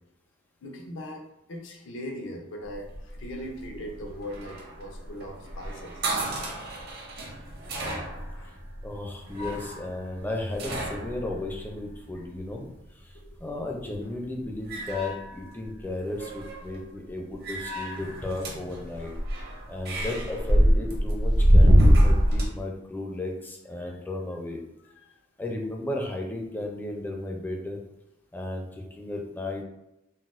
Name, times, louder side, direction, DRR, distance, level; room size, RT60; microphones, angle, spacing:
voice 1, 0.6-6.1 8.3-8.9 12.1-12.2 13.3-13.4 23.8-24.0 25.0-25.1, equal, 75° left, 2 dB, 0.6 m, -40 dB
sound 1, 2.7-12.5 13.8-14.1 14.5-15.8 16.1-16.8 17.4-22.5, equal, 55° right, 0.7 m, -25 dB
voice 2, 8.8-19.4 19.7-24.6 25.4-27.8 28.3-29.6, left 2 dB, 10° left, 1 dB, 0.4 m, -34 dB
4.0 x 2.0 x 2.4 m, 0.88 s
head